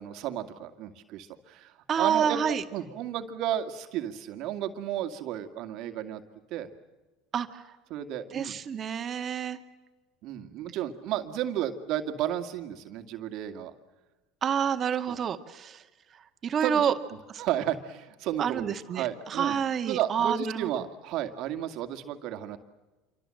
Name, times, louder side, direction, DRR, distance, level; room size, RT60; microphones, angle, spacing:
voice 1, 0.0-6.2 6.5-6.7 7.9-8.6 10.2-13.7 15.1-15.2 16.6-16.9 17.4-22.6, right 11 dB, 60° right, 7 dB, 2.1 m, -33 dB
voice 2, 1.9-2.6 7.3-7.6 8.3-9.6 14.4-15.8 16.4-16.9 18.4-20.7, right 8 dB, 40° right, 8 dB, 2.0 m, -28 dB
27.5 x 24.5 x 7.8 m, 1.2 s
hypercardioid pair, 85°, 0 cm